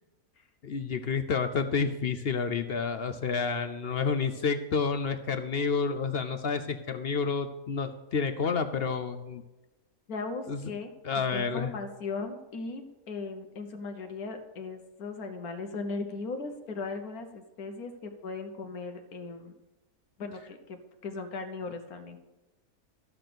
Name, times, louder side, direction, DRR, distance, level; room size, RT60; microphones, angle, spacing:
voice 1, 0.6-9.4 10.5-10.6 11.0-11.7, left 5 dB, 60° left, 9 dB, 0.7 m, -29 dB
voice 2, 10.1-10.9 11.3-19.5 20.2-20.8 21.0-22.2, left 3 dB, 75° left, 5 dB, 1.5 m, -38 dB
13.5 x 6.0 x 6.8 m, 1.1 s
omnidirectional pair, 1.6 m